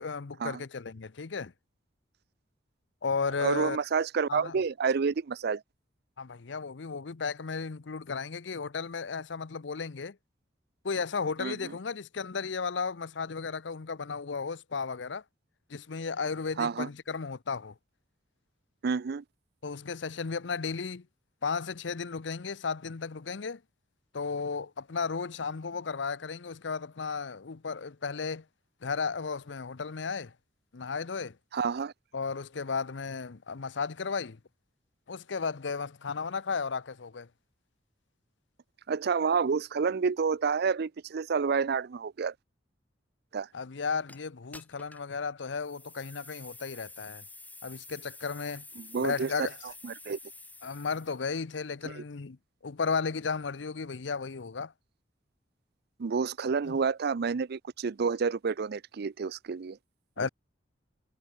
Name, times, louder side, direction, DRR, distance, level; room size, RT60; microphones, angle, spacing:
voice 1, 0.0-1.5 3.0-3.8 4.3-4.6 6.2-10.2 10.8-15.2 15.7-17.7 19.6-21.1 21.4-23.6 24.1-28.4 28.8-30.3 30.7-31.4 32.1-34.4 35.1-37.3 43.5-47.2 47.6-48.6 49.0-49.6 50.6-52.4 52.6-54.7 56.6-56.7 60.2-60.3, left 5 dB, 70° left, 0.7 m, -34 dB
voice 2, 3.4-5.6 11.4-11.7 16.6-16.9 18.8-19.2 31.5-31.9 38.9-42.3 43.3-43.5 48.8-49.5 49.8-50.2 51.9-52.0 56.0-59.8 60.2-60.3, right 5 dB, 60° right, 0.5 m, -29 dB
sound 1, 44.1-44.2 44.5-45.1 45.6-51.2, left 3 dB, 10° left, 5.1 m, -49 dB
head